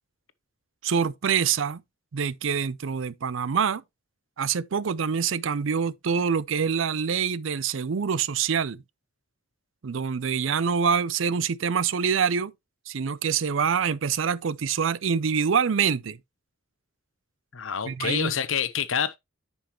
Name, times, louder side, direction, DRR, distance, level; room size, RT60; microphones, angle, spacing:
voice 1, 0.8-1.8 2.1-3.8 4.4-8.8 9.8-12.5 12.9-16.2 17.9-18.3, right 6 dB, 80° right, 0.5 m, -25 dB
voice 2, 17.5-19.2, left 7 dB, 85° left, 0.9 m, -27 dB
10.0 x 5.5 x 3.0 m
head